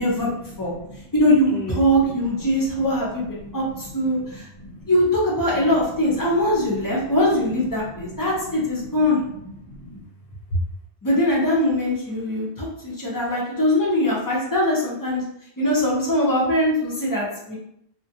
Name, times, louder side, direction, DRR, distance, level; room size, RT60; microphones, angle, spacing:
voice 1, 0.4-1.0 1.5-2.9 3.1-4.9 5.5-10.0 10.5-10.6, equal, 60° left, -2 dB, 0.8 m, -37 dB
voice 2, 1.1-4.4 4.9-9.2 11.0-15.2 15.6-17.5, left 1 dB, 30° left, -5 dB, 0.3 m, -21 dB
2.4 x 2.1 x 2.6 m, 0.76 s
omnidirectional pair, 1.2 m